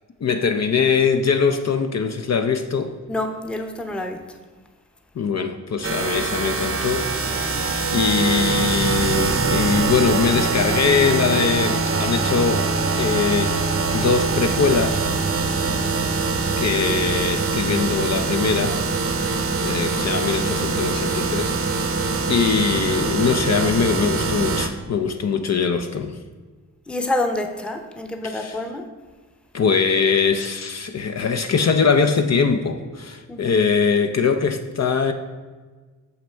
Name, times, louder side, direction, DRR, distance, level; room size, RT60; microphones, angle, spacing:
voice 1, 0.2-3.0 5.2-7.6 7.9-12.7 13.0-15.1 16.6-18.8 19.6-21.9 22.3-26.2 28.2-28.6 29.5-35.1, left 5 dB, 55° left, 7 dB, 0.5 m, -22 dB
voice 2, 3.1-4.2 15.6-16.0 26.9-28.9 33.3-33.5, left 2 dB, 5° left, 4 dB, 0.7 m, -27 dB
sound 1, 5.8-24.7, right 4 dB, 45° right, 0.7 m, -23 dB
6.2 x 5.7 x 4.5 m, 1.4 s
cardioid pair, 60°, 33 cm